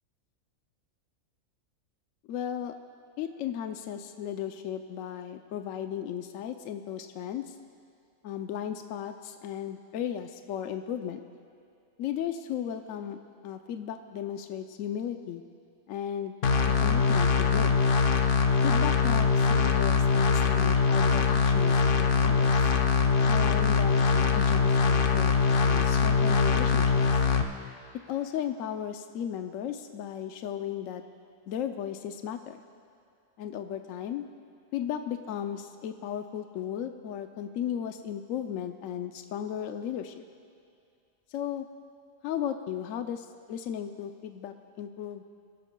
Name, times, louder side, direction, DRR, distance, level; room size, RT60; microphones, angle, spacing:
voice 1, 2.3-2.7 3.2-7.5 8.2-11.2 12.0-13.2 13.4-15.4 15.9-16.4 16.7-17.7 18.6-22.5 23.3-27.0 28.1-31.0 31.5-32.6 33.4-34.2 34.7-40.2 41.3-41.6 42.2-45.2, left 9 dB, 80° left, 7 dB, 1.0 m, -35 dB
sound 1, 16.4-27.4, left 5 dB, 50° left, 0.7 m, -23 dB
24.0 x 13.0 x 2.2 m, 2.4 s
omnidirectional pair, 1.4 m